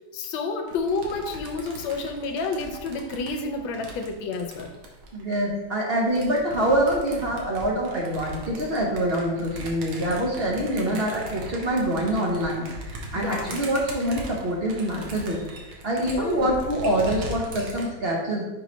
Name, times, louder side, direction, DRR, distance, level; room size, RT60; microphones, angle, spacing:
voice 1, 0.1-4.7 10.9-11.0 13.1-13.6 16.1-16.6, left 4 dB, 80° left, 5 dB, 1.5 m, -30 dB
sound 1, 0.7-5.5 6.0-17.9, right 1 dB, 85° right, 1.8 m, -39 dB
voice 2, 5.1-18.5, right 1 dB, 55° right, -2 dB, 0.7 m, -25 dB
5.9 x 3.1 x 5.0 m, 1.1 s
omnidirectional pair, 2.2 m